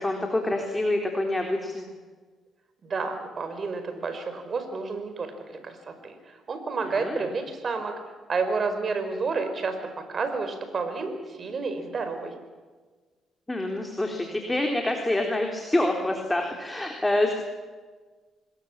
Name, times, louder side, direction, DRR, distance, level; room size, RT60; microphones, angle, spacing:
voice 1, 0.0-1.9 6.9-7.3 13.5-17.4, left 1 dB, 15° left, 2 dB, 3.8 m, -26 dB
voice 2, 2.8-8.0 8.3-12.3, right 4 dB, 45° right, 7 dB, 5.1 m, -30 dB
26.5 x 21.5 x 7.5 m, 1.4 s
cardioid pair, 90°, 0 cm